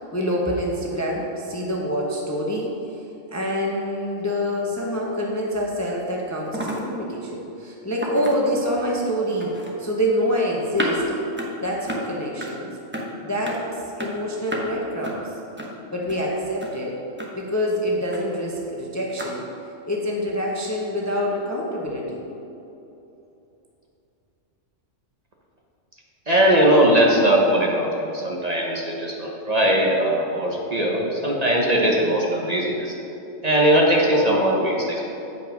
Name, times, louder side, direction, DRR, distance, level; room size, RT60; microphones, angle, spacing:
voice 1, 0.0-2.7 3.3-9.5 9.8-11.0 11.6-12.7 13.2-15.2 15.9-16.9 17.3-19.4 19.9-22.2, equal, 15° left, -2 dB, 0.7 m, -26 dB
sound 1, 5.6-5.7 5.9-6.1 6.4-6.8 7.1-7.3 8.0-8.7 9.4-9.7 10.8-10.9 11.4-11.5 11.9-12.1 12.4-12.5 12.9-13.1 13.4-13.6 14.0-14.1 14.5-14.6 15.0-15.2 15.6-15.7 16.1-16.2 16.6-16.7 17.2-17.3 18.1-18.3 19.2-19.3, right 1 dB, 10° right, 0.9 m, -31 dB
voice 2, 26.3-32.9 33.4-35.1, right 1 dB, 35° right, -2 dB, 1.0 m, -20 dB
8.7 x 5.4 x 5.2 m, 2.9 s
omnidirectional pair, 1.3 m